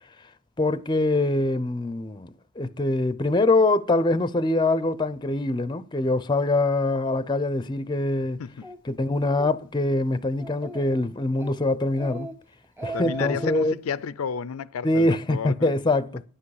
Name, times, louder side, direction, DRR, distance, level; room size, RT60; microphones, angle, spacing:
voice 1, 0.6-2.3 2.6-8.4 8.8-12.3 12.8-13.7 14.8-16.2, left 2 dB, 20° left, 0.5 m, -24 dB
Speech, 8.6-8.8 9.2-9.5 9.9-10.0 10.4-11.0 11.4-11.6 11.9-12.3 12.6-13.7, right 2 dB, 10° right, 1.1 m, -37 dB
voice 2, 12.9-15.7, left 6 dB, 80° left, 0.4 m, -31 dB
10.0 x 8.6 x 4.8 m
head